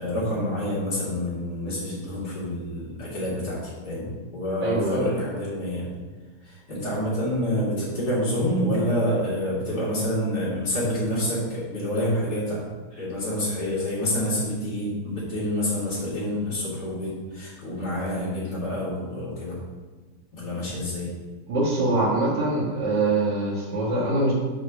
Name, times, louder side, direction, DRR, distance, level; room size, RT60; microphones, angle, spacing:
voice 1, 0.0-5.9 6.4-12.6 12.9-19.6 20.3-21.1, equal, 60° left, -8 dB, 3.5 m, -27 dB
voice 2, 4.6-5.0 21.5-24.3, right 2 dB, 75° right, -11 dB, 2.5 m, -23 dB
6.6 x 5.1 x 6.3 m, 1.3 s
omnidirectional pair, 1.9 m